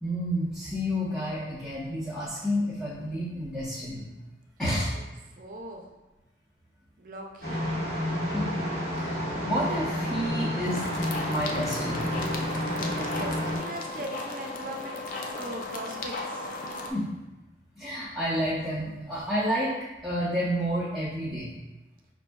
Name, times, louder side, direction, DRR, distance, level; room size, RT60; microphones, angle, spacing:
voice 1, 0.0-4.1 4.6-4.9 8.3-8.5 8.9-10.9 11.3-12.1 16.9-17.1 17.8-19.7 20.0-21.5, equal, ahead, -11 dB, 0.6 m, -30 dB
voice 2, 4.9-5.9 7.0-7.7 12.9-15.0 15.3-16.5, right 1 dB, 50° right, 2 dB, 0.4 m, -40 dB
sound 1, 7.4-13.6, left 1 dB, 65° left, 1.2 m, -30 dB
sound 2, 10.6-16.9, left 2 dB, 50° left, 0.4 m, -36 dB
5.2 x 2.6 x 2.2 m, 1.0 s
head